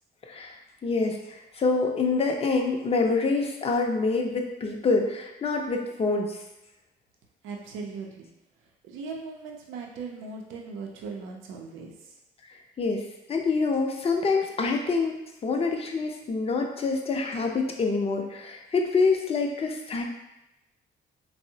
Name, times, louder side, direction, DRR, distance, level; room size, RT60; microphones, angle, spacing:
voice 1, 0.8-6.4 12.8-15.1 15.4-20.0, left 4 dB, 30° left, 2 dB, 0.5 m, -26 dB
voice 2, 7.4-8.3 8.8-12.2, right 4 dB, 85° right, 0 dB, 0.5 m, -39 dB
3.5 x 2.0 x 2.7 m, 0.94 s
cardioid pair, 90°, 20 cm